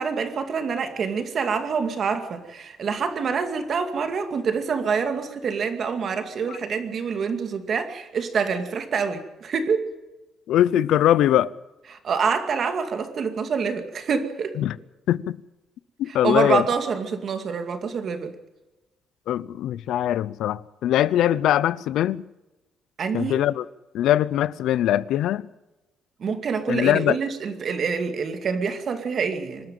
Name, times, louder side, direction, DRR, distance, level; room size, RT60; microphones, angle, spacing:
voice 1, 0.0-9.8 11.9-14.5 16.1-18.3 23.0-23.4 26.2-29.7, right 5 dB, 40° right, 2.3 m, -26 dB
voice 2, 10.5-11.5 14.6-14.8 15.1-15.4 16.0-16.6 19.3-22.3 23.1-23.7 23.9-25.5 26.7-27.2, left 12 dB, 75° left, 0.6 m, -21 dB
25.5 x 12.5 x 9.2 m
cardioid pair, 165°, 0 cm